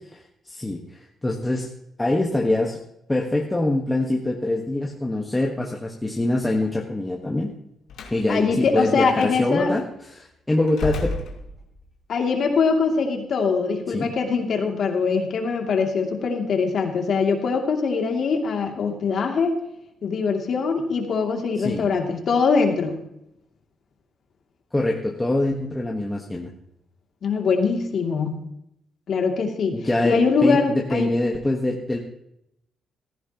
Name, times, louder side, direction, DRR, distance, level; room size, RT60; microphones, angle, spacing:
voice 1, 0.4-0.8 1.2-1.7 2.0-2.8 3.1-7.5 8.1-9.8 10.1-11.2 13.9-14.1 21.6-21.9 24.7-26.5 29.7-32.0, left 1 dB, 10° left, 0 dB, 1.4 m, -24 dB
Slam, 7.9-8.2 9.2-9.3 10.7-12.0, left 3 dB, 75° left, 2.2 m, -31 dB
voice 2, 8.3-9.7 12.1-19.6 20.0-23.0 27.2-28.4 29.1-31.1, left 5 dB, 55° left, 2 dB, 2.6 m, -22 dB
16.0 x 14.5 x 3.0 m, 0.79 s
cardioid pair, 115°, 0 cm